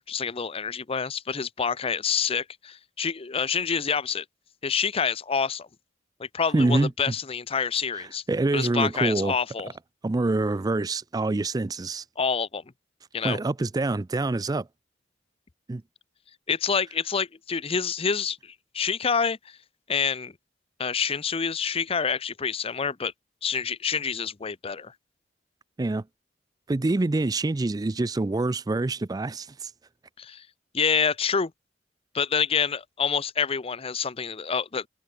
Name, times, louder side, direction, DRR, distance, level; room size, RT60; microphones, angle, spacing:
voice 1, 0.0-4.2 4.6-5.7 6.2-8.2 8.5-9.7 12.2-12.6 13.1-13.4 16.5-19.6 19.9-20.3 20.8-23.1 23.4-24.9 30.2-30.5 30.7-31.5 32.1-34.9, left 6 dB, 30° left, 0.6 m, -27 dB
voice 2, 6.5-6.9 8.0-9.3 10.0-12.0 13.2-14.7 15.7-15.8 25.8-26.0 26.7-29.7, right 2 dB, 20° right, 0.4 m, -26 dB
head